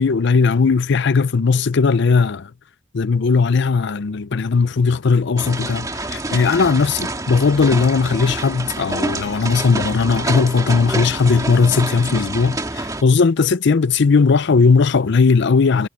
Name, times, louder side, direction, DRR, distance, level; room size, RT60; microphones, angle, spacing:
voice 1, 0.0-2.5 2.9-15.9, left 4 dB, 65° left, 0.5 m, -17 dB
sound 1, 5.4-13.0, right 2 dB, 20° right, 1.9 m, -27 dB
head